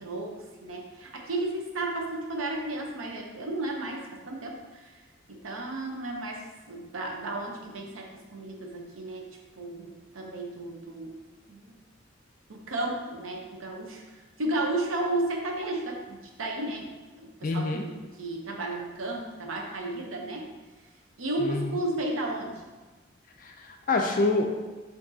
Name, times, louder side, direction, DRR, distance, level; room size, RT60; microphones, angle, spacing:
voice 1, 0.0-4.9 5.3-9.2 9.6-11.1 11.5-11.7 12.5-14.0 14.4-20.5 21.2-22.5, right 2 dB, 85° right, 0 dB, 0.7 m, -33 dB
voice 2, 17.4-17.8 21.4-21.7 23.4-24.5, left 3 dB, 40° left, 3 dB, 0.3 m, -26 dB
6.0 x 2.7 x 2.7 m, 1.3 s
head